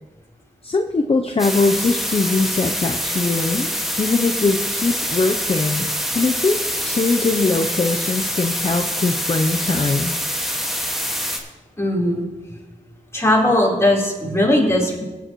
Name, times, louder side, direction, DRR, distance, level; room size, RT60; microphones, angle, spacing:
voice 1, 0.6-5.9 6.1-10.1, left 3 dB, 45° left, 4 dB, 0.7 m, -21 dB
sound 1, 1.4-11.4, equal, ahead, 1.9 m, -25 dB
voice 2, 11.8-12.2 13.1-15.0, left 1 dB, 20° left, -4 dB, 3.9 m, -18 dB
18.0 x 9.2 x 3.1 m, 1.1 s
wide cardioid pair, 60°, 14 cm